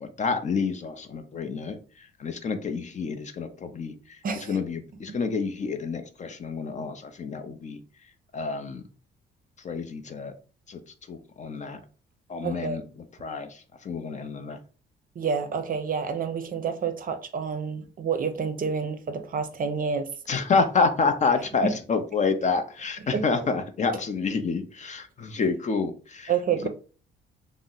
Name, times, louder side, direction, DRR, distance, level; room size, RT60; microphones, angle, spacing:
voice 1, 0.0-7.8 8.3-8.8 9.6-10.3 10.7-10.8 11.1-11.8 12.3-12.8 13.2-14.6 20.3-26.7, left 4 dB, 35° left, 0.5 m, -28 dB
voice 2, 4.2-4.6 12.4-12.8 15.2-20.1 21.6-21.7 23.1-23.2 26.3-26.7, right 6 dB, 45° right, 0.5 m, -28 dB
2.7 x 2.0 x 3.8 m
cardioid pair, 90°, 20 cm